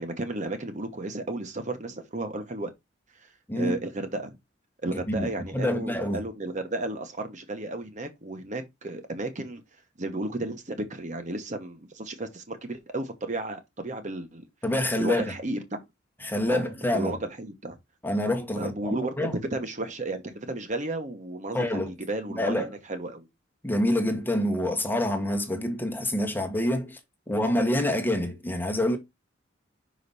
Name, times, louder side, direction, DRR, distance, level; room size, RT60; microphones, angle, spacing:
voice 1, 0.0-2.7 3.2-3.3 3.5-4.3 4.8-9.6 10.0-14.5 15.0-15.8 16.5-17.8 18.6-19.1 19.5-21.7 22.1-23.3, right 2 dB, 40° right, 1.1 m, -33 dB
voice 2, 3.5-3.8 4.9-6.2 14.6-15.3 16.2-17.1 18.0-19.3 21.5-21.9 22.4-22.7 23.6-27.0 27.3-29.0, left 1 dB, 10° left, 1.3 m, -27 dB
5.7 x 5.1 x 4.0 m
head